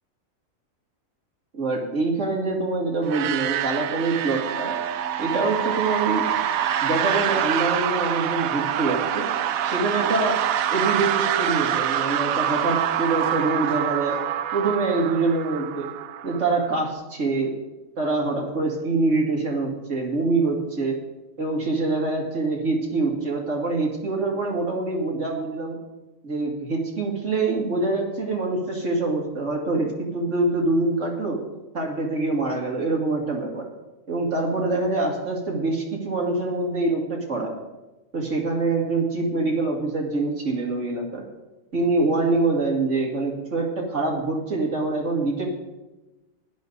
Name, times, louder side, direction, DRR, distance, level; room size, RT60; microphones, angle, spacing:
voice 1, 1.5-4.7 5.2-6.3 6.8-9.3 9.6-10.4 10.7-14.2 14.5-15.9 16.2-17.5 18.0-21.0 21.4-25.8 26.2-31.4 31.7-33.7 34.1-37.5 38.1-41.2 41.7-45.5, right 3 dB, 60° right, -1 dB, 2.8 m, -25 dB
sound 1, 3.0-16.8, right 10 dB, 90° right, 1.1 m, -26 dB
15.5 x 11.0 x 4.0 m, 1.1 s
omnidirectional pair, 1.4 m